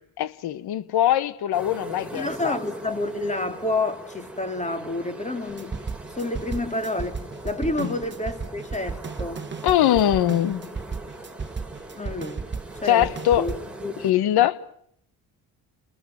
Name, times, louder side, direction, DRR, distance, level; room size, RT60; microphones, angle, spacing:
voice 1, 0.2-2.6 7.8-7.9 9.6-10.7 12.9-13.5 14.0-14.6, left 12 dB, 75° left, 1.3 m, -22 dB
sound 1, 1.5-14.1, right 1 dB, 5° right, 4.0 m, -41 dB
voice 2, 2.1-5.8 6.1-9.5 11.9-12.4 12.8-13.5 13.8-14.1, left 2 dB, 20° left, 3.5 m, -29 dB
sound 2, 5.5-13.6, right 5 dB, 30° right, 1.6 m, -34 dB
29.5 x 20.5 x 9.3 m
cardioid pair, 75°, 39 cm